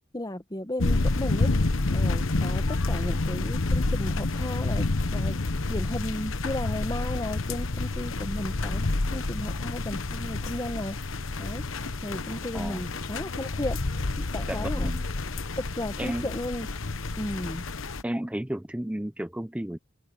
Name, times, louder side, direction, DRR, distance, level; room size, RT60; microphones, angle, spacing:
voice 1, 0.1-1.5 1.9-5.4 5.7-8.9 9.1-11.0 11.4-11.6 12.0-13.8 14.2-14.9 15.6-16.8 17.2-17.7, left 1 dB, 20° left, 1.3 m, -34 dB
sound 1, 0.8-18.0, left 2 dB, 75° left, 1.1 m, -29 dB
voice 2, 12.3-12.8 14.5-15.0 16.0-16.3 18.0-19.8, right 1 dB, 5° right, 0.6 m, -33 dB
open air
head